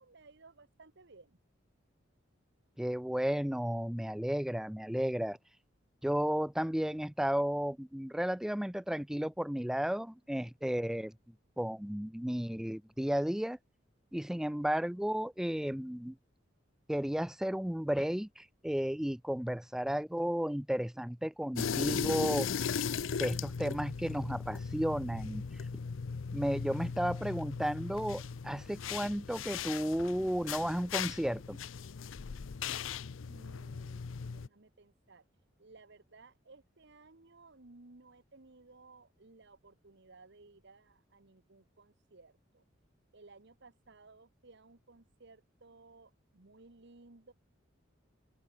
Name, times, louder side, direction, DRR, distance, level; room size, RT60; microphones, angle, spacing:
voice 1, 0.0-1.4 33.2-35.2 35.6-42.6 43.1-47.3, right 3 dB, 65° right, 1.4 m, -58 dB
voice 2, 2.8-5.4 6.0-11.1 11.6-13.6 14.1-16.2 16.9-22.5 23.2-25.4 26.3-31.6, equal, 5° right, 0.4 m, -33 dB
sound 1, 21.6-34.5, left 6 dB, 80° left, 0.6 m, -38 dB
open air
head